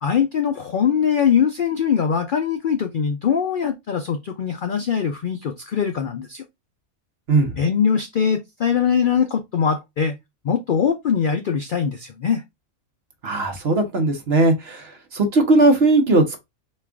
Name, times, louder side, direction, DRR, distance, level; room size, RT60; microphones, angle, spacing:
voice 1, 0.0-6.4 7.6-10.2 10.4-12.4, left 7 dB, 85° left, 0.4 m, -22 dB
voice 2, 13.2-14.8 15.1-16.4, right 2 dB, 50° right, 1.0 m, -18 dB
4.3 x 2.4 x 3.4 m
omnidirectional pair, 1.5 m